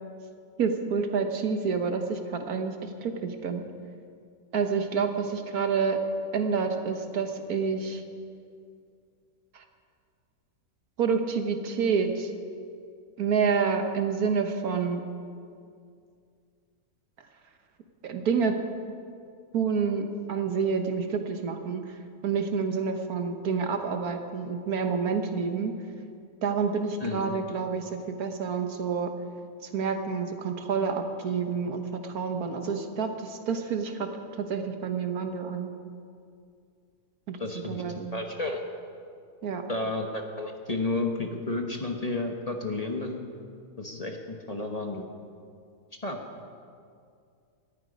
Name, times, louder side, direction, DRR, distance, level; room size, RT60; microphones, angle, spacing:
voice 1, 0.6-3.6 4.5-6.0 6.3-8.0 11.0-12.3 13.2-15.0 18.0-18.6 19.5-21.8 22.2-25.7 26.4-29.1 29.7-34.1 34.4-35.7 37.3-37.4 37.7-38.1 39.4-39.6, right 5 dB, 75° right, 6 dB, 1.6 m, -28 dB
voice 2, 37.4-37.8 38.1-38.6 39.7-43.2 43.8-45.0 46.0-46.2, left 2 dB, 25° left, 2 dB, 1.1 m, -31 dB
18.5 x 13.5 x 5.3 m, 2.3 s
omnidirectional pair, 1.6 m